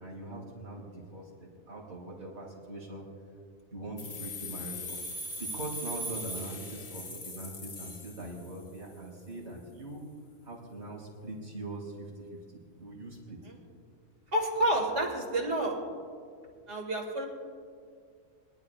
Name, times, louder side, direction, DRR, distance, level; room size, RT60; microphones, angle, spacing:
voice 1, 0.0-3.0 3.7-5.0 5.4-10.1 10.4-12.2 12.5-13.4, right 2 dB, 80° right, -4 dB, 3.9 m, -42 dB
sound 1, 4.0-8.8, left 1 dB, 90° left, 2.1 m, -40 dB
voice 2, 14.3-15.8 16.7-17.3, right 1 dB, 60° right, 0 dB, 2.6 m, -29 dB
23.5 x 12.0 x 2.4 m, 2.2 s
omnidirectional pair, 1.4 m